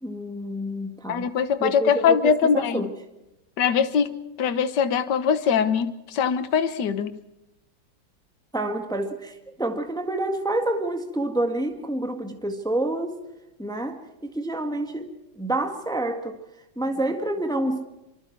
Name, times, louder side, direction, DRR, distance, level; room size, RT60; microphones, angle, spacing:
voice 1, 0.0-1.3 1.6-2.9 8.5-13.2 13.6-16.4 16.7-17.8, right 1 dB, ahead, 5 dB, 1.6 m, -28 dB
voice 2, 1.1-2.8 3.6-7.2, left 7 dB, 65° left, 11 dB, 1.7 m, -22 dB
25.0 x 25.0 x 4.6 m, 0.95 s
omnidirectional pair, 2.1 m